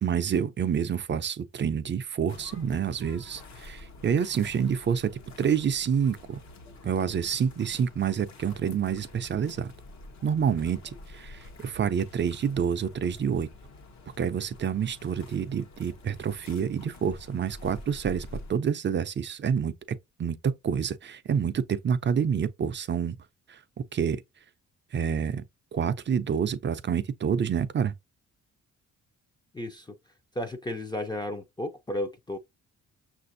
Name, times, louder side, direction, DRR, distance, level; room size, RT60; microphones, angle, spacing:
voice 1, 0.0-5.1 5.4-6.4 6.8-9.7 10.2-13.5 14.2-23.2 23.5-24.2 24.9-25.4 25.7-27.9, right 7 dB, 35° right, 0.5 m, -28 dB
sound 1, 2.3-18.5, left 2 dB, 60° left, 0.9 m, -48 dB
voice 2, 29.5-30.0 30.3-32.4, left 1 dB, 15° left, 0.5 m, -33 dB
5.9 x 2.6 x 2.6 m
cardioid pair, 85°, 31 cm